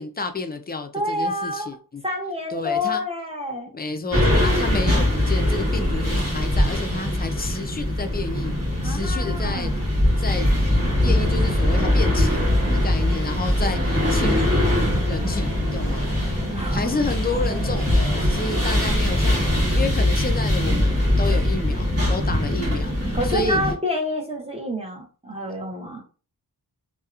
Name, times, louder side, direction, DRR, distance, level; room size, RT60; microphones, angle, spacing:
voice 1, 0.0-2.0 2.5-3.0 3.7-8.5 8.8-9.7 10.2-10.5 11.0-14.7 15.1-16.1 16.7-19.4 19.7-22.9 23.2-23.6, left 3 dB, 25° left, 0.3 m, -30 dB
voice 2, 0.9-1.8 2.0-3.7 8.8-9.8 16.3-16.9 23.1-26.0, left 1 dB, 15° right, 0.7 m, -28 dB
sound 1, 4.1-23.7, left 1 dB, 40° right, 1.2 m, -22 dB
sound 2, 11.4-19.7, right 1 dB, 75° right, 0.8 m, -39 dB
2.6 x 2.1 x 2.4 m
wide cardioid pair, 65°, 37 cm